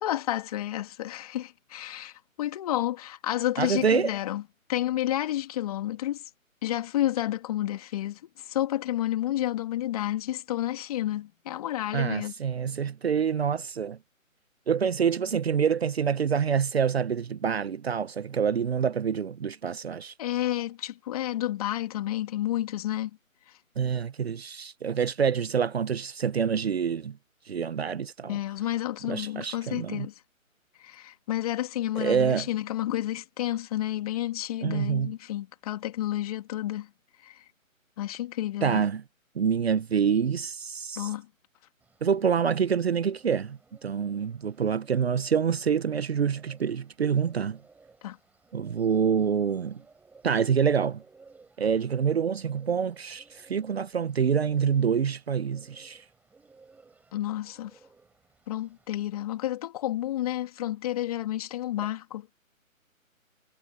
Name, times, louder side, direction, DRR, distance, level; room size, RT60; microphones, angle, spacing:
voice 1, 0.0-4.4 4.7-6.2 6.6-12.3 20.2-23.1 23.5-23.6 28.3-30.1 30.8-36.9 37.2-37.5 38.0-38.8 41.0-41.3 48.0-48.2 57.1-57.8 58.5-62.3, left 13 dB, 25° left, 2.7 m, -30 dB
voice 2, 3.6-4.1 11.9-14.0 14.7-20.1 23.8-27.2 27.5-28.4 29.1-30.1 32.0-32.5 34.6-35.1 38.6-39.0 39.3-41.1 42.0-47.6 48.5-49.8 50.2-51.0 51.6-56.0, right 7 dB, 45° right, 1.0 m, -26 dB
Bird, 41.8-59.1, right 4 dB, 5° right, 4.7 m, -58 dB
figure-of-eight pair, 155°, 41 cm